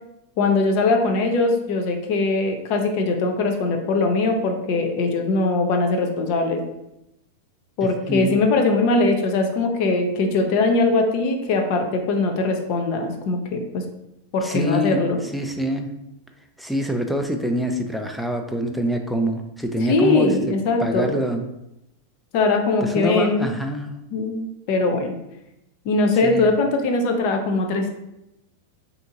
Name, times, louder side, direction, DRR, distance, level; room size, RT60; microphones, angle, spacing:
voice 1, 0.4-6.6 7.8-13.8 14.3-15.2 19.9-21.2 22.3-23.5 24.1-25.1 25.8-27.9, left 3 dB, 50° left, 4 dB, 0.6 m, -21 dB
voice 2, 8.1-8.4 14.4-15.9 16.6-20.5 20.8-21.5 22.8-24.0 26.2-26.5, equal, ahead, 4 dB, 0.3 m, -25 dB
2.8 x 2.7 x 3.6 m, 0.88 s
supercardioid pair, 140°, 0 cm